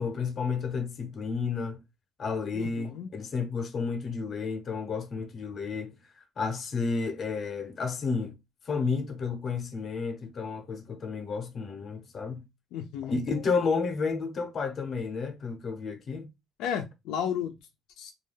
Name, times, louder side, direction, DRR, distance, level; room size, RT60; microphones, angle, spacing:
voice 1, 0.0-1.8 2.2-8.4 8.6-12.4 13.1-16.3, left 5 dB, 40° left, 0.7 m, -31 dB
voice 2, 2.5-3.1 12.7-13.2 16.6-17.5 18.0-18.1, left 8 dB, 85° left, 0.4 m, -33 dB
2.3 x 2.2 x 3.2 m
cardioid pair, 115°, 0 cm